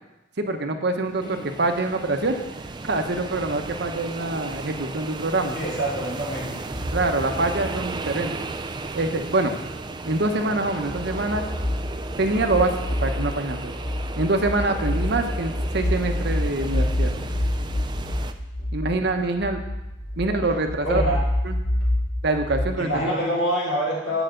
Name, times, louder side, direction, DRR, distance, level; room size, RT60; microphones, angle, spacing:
voice 1, 0.4-2.4 2.8-5.6 6.9-8.3 8.9-9.5 10.0-11.4 12.2-12.7 13.0-13.7 14.2-17.1 18.7-19.6 20.2-21.0 21.4-21.6 22.2-23.1, right 2 dB, 60° right, 5 dB, 1.0 m, -25 dB
sound 1, 1.1-18.3, right 3 dB, 25° right, 0.4 m, -35 dB
voice 2, 5.5-6.6 20.8-21.2 21.8-21.9 22.8-24.2, equal, 80° left, -6 dB, 4.1 m, -26 dB
sound 2, 6.7-8.5 9.7-10.2 10.7-22.7, left 1 dB, 55° left, 1.6 m, -28 dB
9.1 x 4.9 x 7.7 m, 0.96 s
head